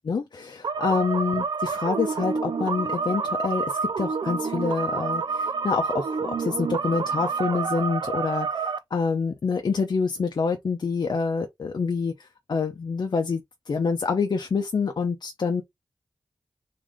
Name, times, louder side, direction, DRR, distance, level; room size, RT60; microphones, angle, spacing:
voice 1, 0.1-15.6, left 5 dB, 70° left, 0.7 m, -27 dB
sound 1, 0.6-8.8, right 5 dB, 80° right, 0.4 m, -28 dB
3.8 x 3.4 x 3.7 m
cardioid pair, 60°, 8 cm